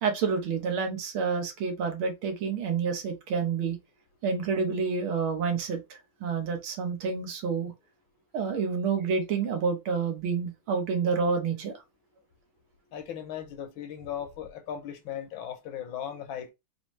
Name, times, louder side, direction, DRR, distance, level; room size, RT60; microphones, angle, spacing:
voice 1, 0.0-3.8 4.2-7.7 8.3-11.7, right 5 dB, 75° right, 1.8 m, -29 dB
voice 2, 12.9-16.5, left 9 dB, 70° left, 1.5 m, -37 dB
4.8 x 2.7 x 3.1 m
omnidirectional pair, 2.4 m